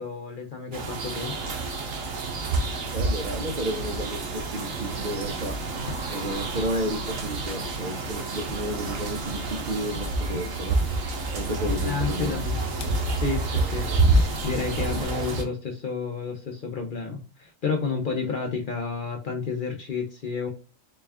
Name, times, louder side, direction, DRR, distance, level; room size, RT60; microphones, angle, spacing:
voice 1, 0.0-1.3 11.8-12.6 13.1-20.5, left 5 dB, 50° left, 2 dB, 0.6 m, -31 dB
sound 1, 0.7-15.4, right 3 dB, 90° right, 1.2 m, -28 dB
voice 2, 2.9-5.6 6.1-10.8 11.3-12.3, equal, 50° right, 2 dB, 0.6 m, -32 dB
sound 2, 4.3-15.1, left 3 dB, 90° left, 1.0 m, -40 dB
4.1 x 2.3 x 3.4 m, 0.35 s
omnidirectional pair, 1.3 m